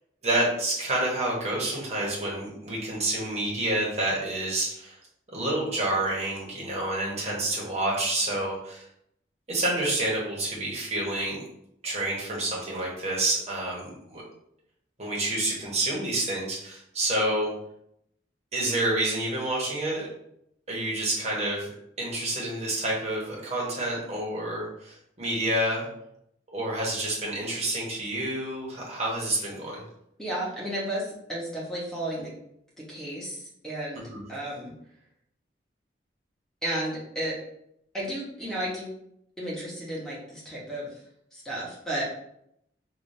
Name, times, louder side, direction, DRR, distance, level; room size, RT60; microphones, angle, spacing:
voice 1, 0.2-5.0 5.3-8.8 9.5-11.4 11.8-14.2 15.0-17.5 18.5-20.1 20.7-21.7 22.0-25.9 26.5-29.8 34.1-34.2, right 1 dB, 35° right, -4 dB, 1.1 m, -28 dB
voice 2, 30.2-32.3 32.8-34.7 36.6-37.4 37.9-38.9 39.4-40.9 41.3-42.1, right 1 dB, 5° left, -6 dB, 1.0 m, -33 dB
4.9 x 2.5 x 2.7 m, 0.76 s
head